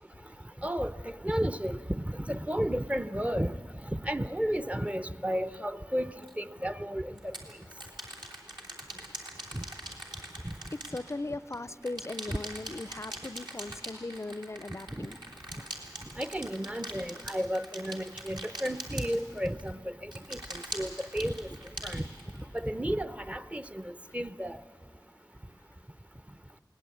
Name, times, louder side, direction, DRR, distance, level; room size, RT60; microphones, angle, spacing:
voice 1, 0.6-3.5 3.9-6.1 6.4-7.1 9.5-9.6 10.4-10.5 12.3-12.4 15.0-15.1 16.2-20.4 20.7-21.5 21.8-22.0 22.5-24.6, equal, 15° right, 14 dB, 0.6 m, -32 dB
sound 1, 6.2-6.3 7.2-11.6 11.8-19.7 20.1-22.6, right 1 dB, 70° right, 3.1 m, -42 dB
voice 2, 10.7-15.2, left 2 dB, 35° left, 16 dB, 0.4 m, -38 dB
20.0 x 18.5 x 8.5 m, 2.7 s
wide cardioid pair, 50°, 8 cm